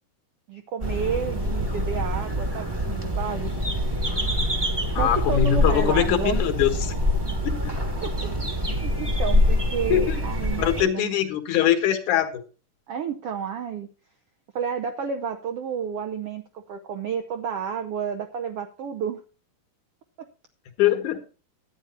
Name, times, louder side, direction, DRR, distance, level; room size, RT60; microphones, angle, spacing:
voice 1, 0.5-3.7 4.0-4.1 5.0-6.4 8.0-8.3 8.8-11.1 12.9-13.9 14.5-19.2 20.2-20.3, right 7 dB, 75° right, 5 dB, 1.4 m, -31 dB
sound 1, 0.8-10.8, left 1 dB, 15° right, 1.0 m, -25 dB
voice 2, 5.0-6.9 7.4-7.5 9.9-10.0 10.6-12.4 20.8-21.3, left 10 dB, 70° left, 7 dB, 2.7 m, -22 dB
12.0 x 9.3 x 4.3 m, 0.35 s
omnidirectional pair, 3.7 m